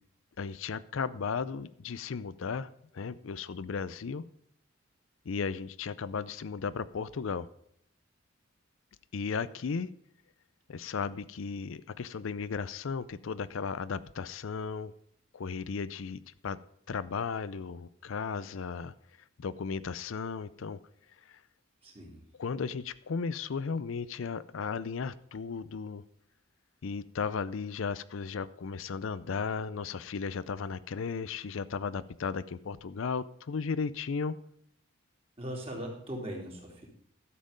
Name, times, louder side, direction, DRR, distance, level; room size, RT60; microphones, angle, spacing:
voice 1, 0.4-4.3 5.3-7.5 9.1-9.9 10.7-14.9 15.3-16.6 16.9-18.9 19.4-20.8 21.3-21.4 22.4-26.0 26.8-34.4, left 5 dB, 70° left, 16 dB, 0.5 m, -35 dB
voice 2, 21.8-22.2 35.4-36.9, equal, 25° right, -1 dB, 3.0 m, -39 dB
12.5 x 7.6 x 5.1 m, 0.70 s
head